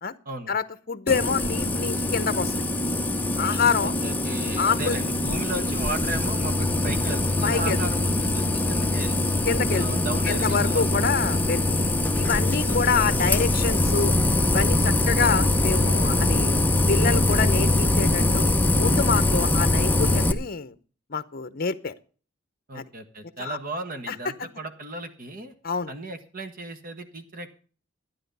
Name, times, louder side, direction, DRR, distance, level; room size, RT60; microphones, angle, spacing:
voice 1, 0.5-2.5 3.4-3.9 4.6-5.0 7.4-7.8 9.5-11.6 12.2-14.1 14.5-16.5 16.9-18.4 18.8-20.7 21.1-21.9 22.7-22.9 23.4-23.6 24.1-24.2 25.6-25.9, left 5 dB, 45° left, 14 dB, 0.8 m, -26 dB
sound 1, 1.1-20.3, left 1 dB, 10° left, 0.8 m, -23 dB
voice 2, 3.8-9.1 9.7-11.1 12.6-13.0 22.7-25.5 25.9-27.5, right 2 dB, 45° right, 8 dB, 1.5 m, -35 dB
13.0 x 10.0 x 5.4 m, 0.40 s
head